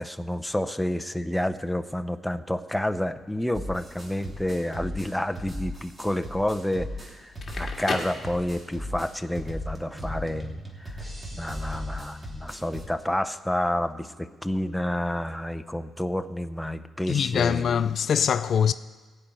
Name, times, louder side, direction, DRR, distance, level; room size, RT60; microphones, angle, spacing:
voice 1, 0.0-11.0 11.3-17.7, left 1 dB, 5° left, 0.6 m, -29 dB
sound 1, 3.5-12.8, left 1 dB, 25° right, 2.7 m, -37 dB
Crackle, 7.2-8.9, left 4 dB, 40° left, 1.9 m, -34 dB
voice 2, 17.1-18.7, left 8 dB, 60° left, 0.4 m, -23 dB
15.0 x 5.4 x 9.0 m
cardioid pair, 85°, 0 cm